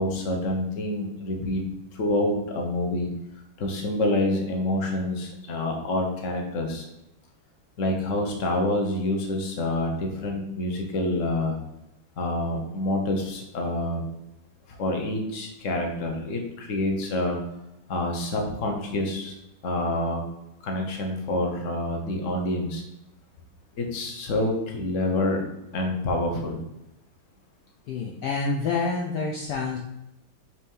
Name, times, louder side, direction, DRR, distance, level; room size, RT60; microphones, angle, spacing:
voice 1, 0.0-1.7 1.9-3.1 3.6-6.9 7.8-11.6 12.2-14.0 14.8-17.4 17.9-19.3 19.6-20.2 20.6-22.8 23.8-25.4 25.7-26.6, left 1 dB, 45° left, 2 dB, 1.2 m, -27 dB
voice 2, 27.9-29.8, left 4 dB, 70° left, 0 dB, 1.2 m, -27 dB
5.7 x 3.1 x 5.4 m, 0.88 s
omnidirectional pair, 2.2 m